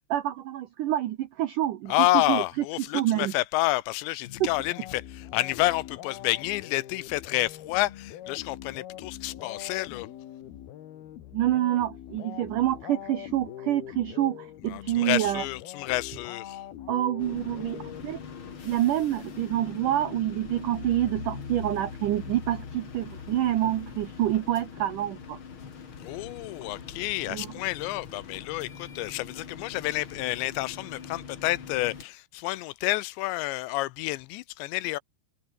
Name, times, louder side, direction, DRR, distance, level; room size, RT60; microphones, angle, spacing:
voice 1, 0.1-1.9 2.3-2.4 2.9-3.3 4.4-4.5 11.3-15.4 16.9-18.2 18.6-25.4 27.3-27.5, right 13 dB, 90° right, 1.8 m, -27 dB
voice 2, 1.9-10.1 14.7-16.6 26.0-35.0, left 19 dB, 80° left, 2.9 m, -29 dB
sound 1, 4.2-18.6, left 11 dB, 65° left, 3.4 m, -43 dB
sound 2, 17.2-32.0, left 6 dB, 40° left, 2.2 m, -42 dB
omnidirectional pair, 5.3 m